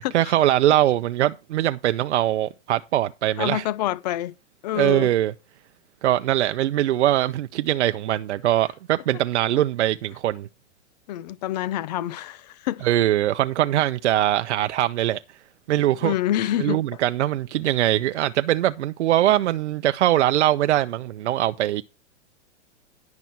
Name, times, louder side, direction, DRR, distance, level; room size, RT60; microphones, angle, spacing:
voice 1, 0.0-3.6 4.7-5.3 6.0-10.5 12.8-15.2 15.7-16.1 16.6-21.8, right 13 dB, 75° right, 0.8 m, -22 dB
voice 2, 3.4-4.3 4.6-5.1 9.5-9.6 11.1-12.9 16.0-16.8, left 13 dB, 35° left, 0.7 m, -27 dB
10.5 x 6.2 x 5.5 m
supercardioid pair, 170°, 35 cm